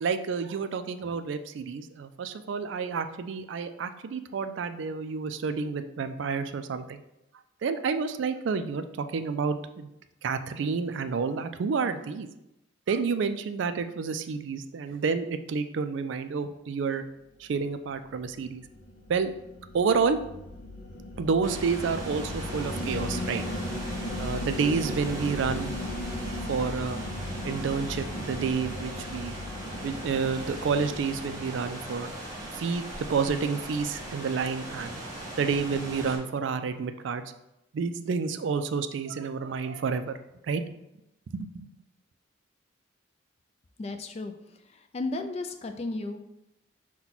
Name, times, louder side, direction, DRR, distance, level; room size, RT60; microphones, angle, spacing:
voice 1, 0.0-7.0 7.6-9.9 10.2-12.3 12.9-17.0 17.4-18.6 19.1-19.3 19.7-20.2 21.2-23.4 24.2-25.7 26.5-27.0 27.4-29.4 29.7-32.1 32.5-35.0 35.4-37.2 37.7-40.2 40.5-40.6 41.3-41.7, right 5 dB, 65° right, 10 dB, 0.3 m, -29 dB
sound 1, 18.1-32.6, left 1 dB, 70° left, 0.6 m, -37 dB
sound 2, 21.4-36.2, right 1 dB, 20° right, 1.2 m, -39 dB
voice 2, 43.8-44.3 44.9-46.2, left 2 dB, 30° left, 6 dB, 0.3 m, -33 dB
5.8 x 2.2 x 4.0 m, 0.88 s
head